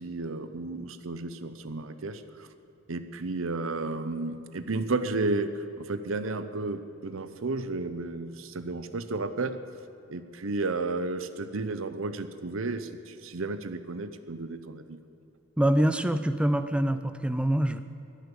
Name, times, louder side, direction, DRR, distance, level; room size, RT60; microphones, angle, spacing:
voice 1, 0.0-2.5 2.9-9.6 10.1-15.0, right 3 dB, 80° right, 11 dB, 0.8 m, -32 dB
voice 2, 15.6-17.8, right 1 dB, 5° right, 11 dB, 0.5 m, -25 dB
12.0 x 10.5 x 9.9 m, 3.0 s
head